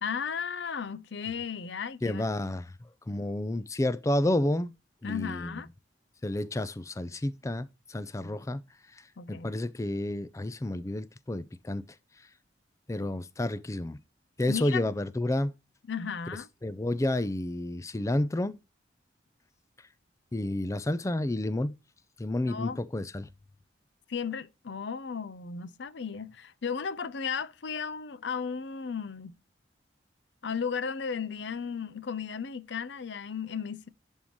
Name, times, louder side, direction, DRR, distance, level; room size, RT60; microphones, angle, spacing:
voice 1, 0.0-2.3 5.0-5.7 8.2-8.4 9.2-9.5 14.5-14.9 15.9-16.5 22.5-22.8 24.1-29.3 30.4-33.9, left 6 dB, 75° left, 0.6 m, -35 dB
voice 2, 2.0-2.7 3.1-4.7 5.0-5.6 6.2-8.6 9.3-11.8 12.9-14.0 14.4-15.5 16.6-18.6 20.3-21.7 22.2-23.3, left 1 dB, 15° left, 0.4 m, -30 dB
11.0 x 3.7 x 3.0 m
head